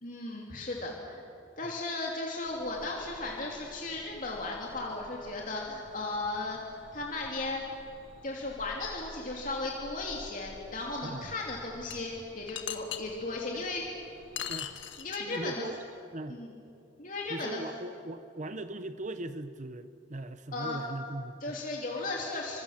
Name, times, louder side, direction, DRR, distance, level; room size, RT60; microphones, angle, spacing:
voice 1, 0.0-1.2 1.6-6.6 6.9-7.6 8.2-13.8 15.0-15.6 16.3-16.5 17.0-17.6 20.5-20.8 21.4-22.6, left 2 dB, 45° left, -2 dB, 3.0 m, -36 dB
sound 1, 2.4-14.9, equal, 90° left, 6.1 m, -53 dB
sound 2, 11.9-12.0 12.5-13.0 14.4-15.4, left 10 dB, 70° left, 1.6 m, -37 dB
voice 2, 15.2-15.8 16.1-16.4 17.3-21.6, right 2 dB, 40° right, 11 dB, 0.8 m, -39 dB
29.5 x 25.5 x 7.4 m, 2.8 s
head